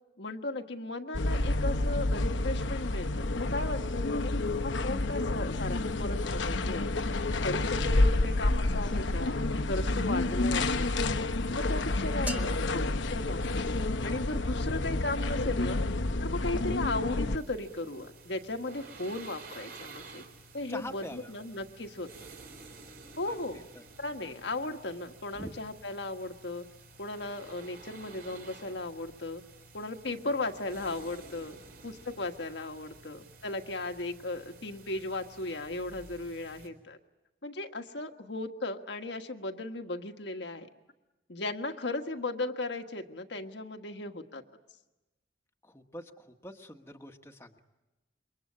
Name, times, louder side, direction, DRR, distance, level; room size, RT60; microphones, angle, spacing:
voice 1, 0.2-4.3 4.6-7.1 7.4-9.4 9.7-10.9 11.5-15.8 16.2-20.3 20.5-22.1 23.2-23.6 24.0-26.6 27.0-29.4 29.7-37.0 37.4-40.7 41.3-44.4, left 2 dB, 70° left, 6 dB, 1.6 m, -36 dB
sound 1, 1.1-17.4, left 2 dB, 90° left, 1.0 m, -29 dB
sound 2, 12.3-14.2, equal, 10° right, 1.6 m, -44 dB
sound 3, 17.4-36.7, right 3 dB, 55° right, 4.0 m, -52 dB
voice 2, 20.7-21.3 23.3-23.8 25.3-25.5 45.6-47.6, left 1 dB, 15° left, 3 dB, 1.4 m, -44 dB
27.5 x 23.5 x 8.7 m, 1.1 s
head